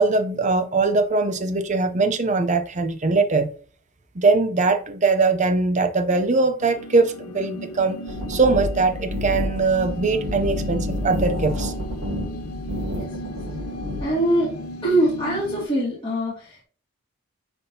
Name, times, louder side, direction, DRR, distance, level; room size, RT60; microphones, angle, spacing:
voice 1, 0.0-3.5 4.2-8.0 8.3-11.7, right 3 dB, 35° right, 0.6 m, -21 dB
sound 1, 6.6-15.7, left 1 dB, 90° left, 0.7 m, -36 dB
sound 2, 8.1-14.0, left 1 dB, 75° right, 1.6 m, -29 dB
voice 2, 12.9-13.4 14.0-16.6, right 1 dB, 25° left, 2.2 m, -24 dB
9.8 x 3.5 x 2.8 m
head